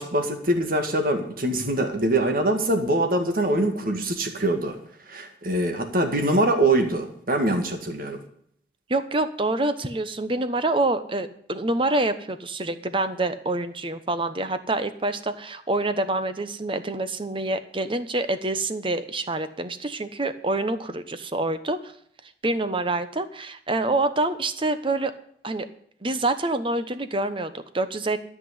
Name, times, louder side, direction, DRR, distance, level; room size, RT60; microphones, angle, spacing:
voice 1, 0.0-4.8 5.1-8.2, right 1 dB, 55° right, 5 dB, 2.0 m, -23 dB
voice 2, 8.9-21.9 22.2-25.1 25.4-25.7 26.0-28.2, right 2 dB, 30° right, 11 dB, 1.0 m, -26 dB
13.0 x 6.1 x 9.7 m, 0.66 s
head